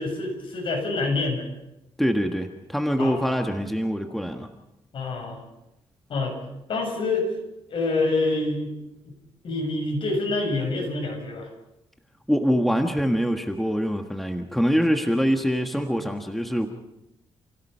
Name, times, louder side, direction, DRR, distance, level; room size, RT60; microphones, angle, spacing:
voice 1, 0.0-1.4 3.0-3.4 4.9-5.4 6.1-6.3 6.7-7.3 7.7-8.7 9.0-9.1 9.4-11.5, left 3 dB, 60° left, 2 dB, 7.6 m, -26 dB
voice 2, 2.0-4.5 12.3-16.7, equal, ahead, 5 dB, 1.5 m, -24 dB
29.0 x 17.0 x 5.7 m, 0.90 s
cardioid pair, 100°, 10 cm